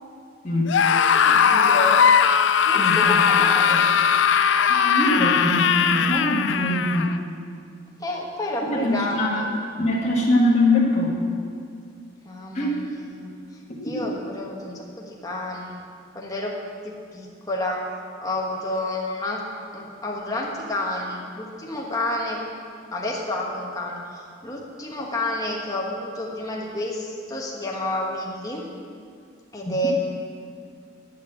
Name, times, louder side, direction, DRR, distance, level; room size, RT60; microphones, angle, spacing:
Screaming, 0.7-7.2, left 7 dB, 70° left, 0.4 m, -19 dB
voice 1, 0.9-2.1 2.7-3.8 8.0-9.5 12.2-13.3 13.8-15.7 16.1-16.6 16.8-17.8 18.2-19.4 19.7-22.4 22.9-28.6 29.5-29.9, left 1 dB, 20° left, -2 dB, 1.4 m, -30 dB
voice 2, 2.7-3.2 4.7-7.1 8.7-9.4 9.8-11.2 12.5-12.8 13.9-14.0 29.6-29.7, left 1 dB, 35° left, -5 dB, 1.7 m, -22 dB
10.5 x 6.7 x 7.8 m, 2.3 s
head